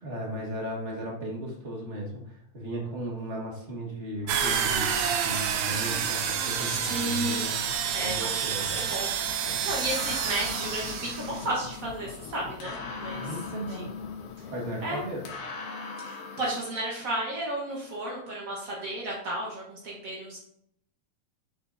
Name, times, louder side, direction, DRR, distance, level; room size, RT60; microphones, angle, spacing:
voice 1, 0.0-2.2 2.5-7.5 8.0-8.8 9.4-9.6 13.1-13.8 14.5-15.2, right 1 dB, 30° right, -2 dB, 1.4 m, -36 dB
sound 1, 4.2-15.9, left 8 dB, 90° left, 2.1 m, -46 dB
sound 2, 4.3-11.4, right 8 dB, 75° right, 1.5 m, -29 dB
voice 2, 6.6-7.4 7.9-13.9 14.8-15.0 16.0-20.4, right 1 dB, 55° right, -4 dB, 0.9 m, -33 dB
sound 3, 8.6-16.6, left 4 dB, 75° left, 2.4 m, -41 dB
7.4 x 6.9 x 2.7 m, 0.71 s
omnidirectional pair, 3.4 m